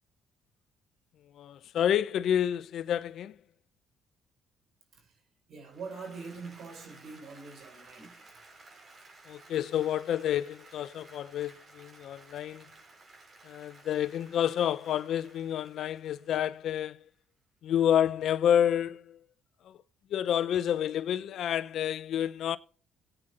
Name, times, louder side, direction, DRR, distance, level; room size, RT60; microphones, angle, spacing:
voice 1, 1.3-3.4 9.3-12.7 13.4-17.0 17.6-19.2 19.6-19.8 20.1-22.6, left 10 dB, 70° left, 0.7 m, -29 dB
voice 2, 5.5-8.3, right 4 dB, 65° right, 4.5 m, -44 dB
Applause, 5.7-17.0, right 3 dB, 45° right, 5.9 m, -56 dB
16.5 x 9.1 x 4.3 m
supercardioid pair, 75°, 0 cm